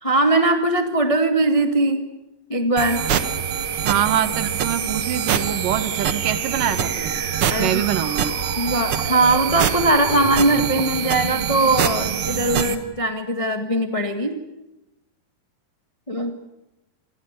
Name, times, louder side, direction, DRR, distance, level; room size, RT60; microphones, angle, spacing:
voice 1, 0.0-2.0 2.5-3.1 7.5-7.8 8.6-14.4 16.1-16.4, right 2 dB, 25° left, 5 dB, 0.6 m, -20 dB
sound 1, 2.8-12.8, right 8 dB, 55° right, 1.6 m, -24 dB
voice 2, 3.8-7.1 7.6-8.4, right 10 dB, 75° right, 12 dB, 2.8 m, -24 dB
sound 2, 6.6-8.9, left 2 dB, 80° left, 5.3 m, -42 dB
27.5 x 19.5 x 8.3 m, 0.94 s
omnidirectional pair, 4.1 m